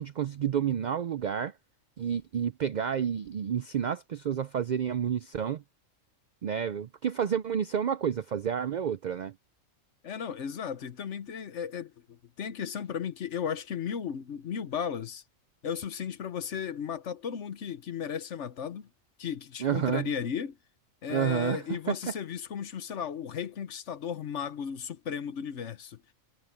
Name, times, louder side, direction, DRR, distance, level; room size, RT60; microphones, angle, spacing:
voice 1, 0.0-1.5 2.0-5.6 6.4-9.3 19.6-20.1 21.1-22.0, right 8 dB, 75° right, 0.4 m, -30 dB
voice 2, 10.0-15.2 15.6-18.9 19.2-20.6 21.0-26.1, left 8 dB, 65° left, 1.2 m, -35 dB
omnidirectional pair, 1.4 m